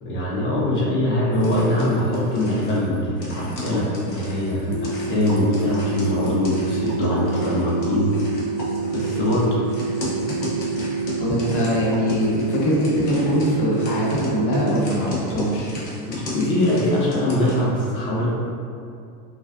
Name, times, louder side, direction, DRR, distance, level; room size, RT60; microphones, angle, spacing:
voice 1, 0.0-8.1 8.9-9.6 15.7-18.3, left 1 dB, 25° left, -6 dB, 0.6 m, -22 dB
sound 1, 1.3-17.6, left 1 dB, 85° left, 0.8 m, -34 dB
sound 2, 4.7-14.7, right 4 dB, 15° right, 0.7 m, -27 dB
voice 2, 11.2-15.8, equal, 50° left, -5 dB, 0.9 m, -22 dB
2.4 x 2.3 x 2.4 m, 2.4 s
hypercardioid pair, 90°, 48 cm